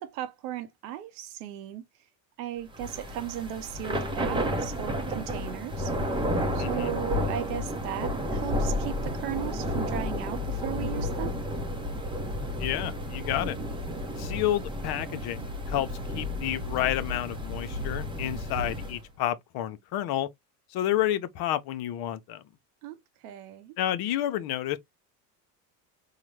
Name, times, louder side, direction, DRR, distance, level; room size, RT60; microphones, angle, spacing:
voice 1, 0.0-1.9 2.4-5.9 6.5-11.4 22.8-23.0 23.2-23.7, right 11 dB, 70° right, 0.8 m, -36 dB
Thunder / Rain, 2.7-19.0, left 1 dB, 10° right, 0.7 m, -31 dB
voice 2, 6.6-6.9 12.6-13.6 14.2-15.9 16.1-20.3 20.7-22.4 23.8-24.8, left 12 dB, 55° left, 0.7 m, -30 dB
3.8 x 2.1 x 3.1 m
supercardioid pair, 90°, 47 cm